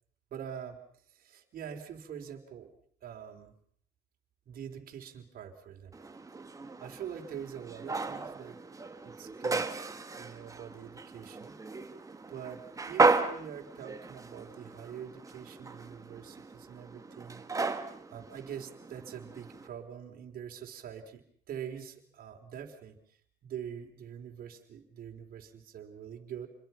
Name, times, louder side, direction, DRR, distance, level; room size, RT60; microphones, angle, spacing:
voice 1, 0.3-0.8 1.1-2.7 3.0-3.5 4.5-5.9 6.8-8.6 9.0-9.7 10.1-11.6 12.3-17.4 18.1-26.5, right 8 dB, 60° right, 2 dB, 3.9 m, -44 dB
sound 1, 5.9-19.7, right 3 dB, 20° right, 1.9 m, -34 dB
28.5 x 22.0 x 5.9 m, 0.62 s
cardioid pair, 110°, 17 cm